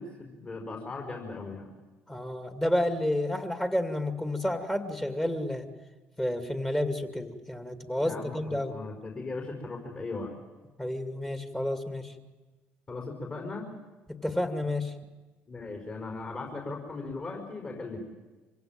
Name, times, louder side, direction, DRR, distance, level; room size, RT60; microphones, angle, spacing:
voice 1, 0.0-1.7 7.9-10.3 12.9-13.7 15.5-18.0, left 3 dB, 35° left, 0 dB, 4.7 m, -38 dB
voice 2, 2.1-5.7 6.2-8.7 10.8-12.1 14.2-14.9, left 1 dB, 10° left, 7 dB, 2.4 m, -30 dB
25.0 x 16.5 x 9.2 m, 1.2 s
hypercardioid pair, 55°, 6 cm